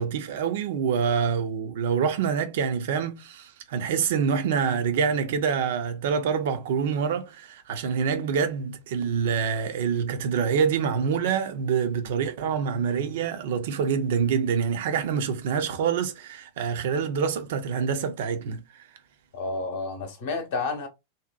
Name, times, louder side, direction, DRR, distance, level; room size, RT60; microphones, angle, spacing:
voice 1, 0.0-18.6, right 6 dB, 55° right, 0.4 m, -26 dB
voice 2, 19.3-20.9, left 3 dB, 55° left, 0.7 m, -30 dB
2.7 x 2.0 x 2.3 m
figure-of-eight pair, 90°, 0 cm